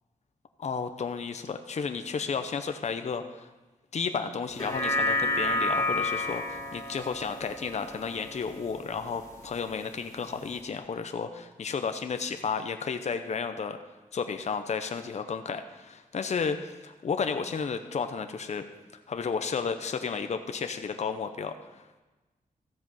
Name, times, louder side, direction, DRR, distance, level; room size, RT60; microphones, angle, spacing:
voice 1, 0.6-3.5 3.9-13.8 14.1-16.6 17.0-18.6 19.1-22.0, left 5 dB, 50° left, 8 dB, 0.7 m, -32 dB
sound 1, 4.5-9.1 9.5-9.6, left 2 dB, 25° left, 2.3 m, -30 dB
14.0 x 7.8 x 5.5 m, 1.2 s
wide cardioid pair, 115°, 14 cm